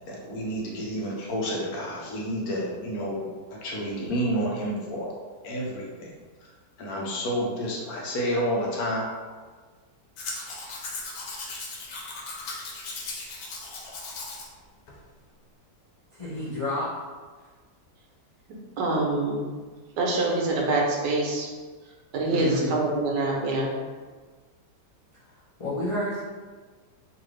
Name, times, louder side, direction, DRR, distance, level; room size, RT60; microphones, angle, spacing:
voice 1, 0.1-5.1 5.4-6.1 6.8-9.0, equal, 65° left, -3 dB, 1.1 m, -30 dB
Domestic sounds home sounds, 10.2-14.5 14.9-15.0, left 3 dB, 85° left, 1.3 m, -37 dB
voice 2, 16.1-16.9 22.3-22.7 25.6-26.2, left 1 dB, 50° left, -12 dB, 0.4 m, -29 dB
voice 3, 18.8-19.5 20.0-21.5 22.1-23.7, right 2 dB, 85° right, -1 dB, 1.3 m, -25 dB
3.2 x 2.5 x 3.1 m, 1.4 s
omnidirectional pair, 1.8 m